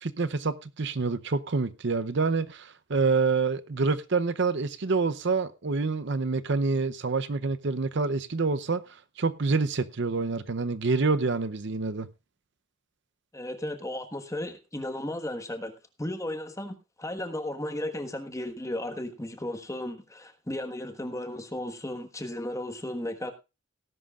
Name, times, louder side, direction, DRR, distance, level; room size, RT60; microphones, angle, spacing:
voice 1, 0.0-8.8 9.2-12.1, right 4 dB, 55° right, 0.7 m, -27 dB
voice 2, 13.3-23.3, left 1 dB, 15° left, 1.3 m, -35 dB
18.0 x 11.0 x 2.4 m
head